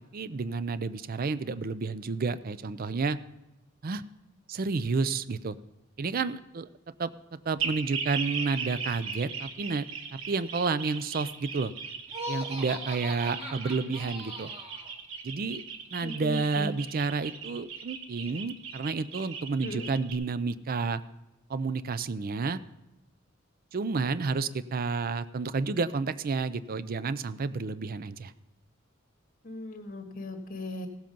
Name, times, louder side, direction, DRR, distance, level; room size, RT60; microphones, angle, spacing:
voice 1, 0.0-3.2 3.8-4.0 4.5-5.6 6.0-6.7 7.0-9.8 10.1-11.7 12.3-14.5 15.2-15.6 15.9-21.0 21.5-22.6 23.7-28.3, right 4 dB, 45° right, 15 dB, 0.5 m, -30 dB
sound 1, 7.6-20.1, right 6 dB, 75° right, 1.2 m, -38 dB
Laughter, 12.1-14.9, equal, 30° right, 2.1 m, -39 dB
voice 2, 13.2-13.8 16.0-16.7 19.6-19.9 29.4-30.9, left 1 dB, 45° left, 5 dB, 1.7 m, -38 dB
17.0 x 7.6 x 5.3 m, 0.96 s
head